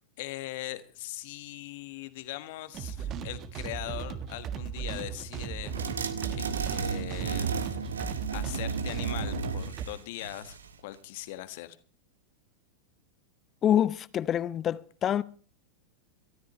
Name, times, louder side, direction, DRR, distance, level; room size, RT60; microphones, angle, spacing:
voice 1, 0.2-5.8 6.3-7.5 8.3-10.6 10.8-11.8, left 16 dB, 50° left, 1.4 m, -40 dB
sound 1, 2.7-9.9, right 7 dB, 35° right, 1.4 m, -37 dB
sound 2, 5.7-10.7, right 5 dB, 70° right, 1.4 m, -34 dB
voice 2, 13.6-15.2, left 10 dB, 25° left, 0.6 m, -26 dB
23.0 x 13.5 x 3.2 m
figure-of-eight pair, 90°, 0 cm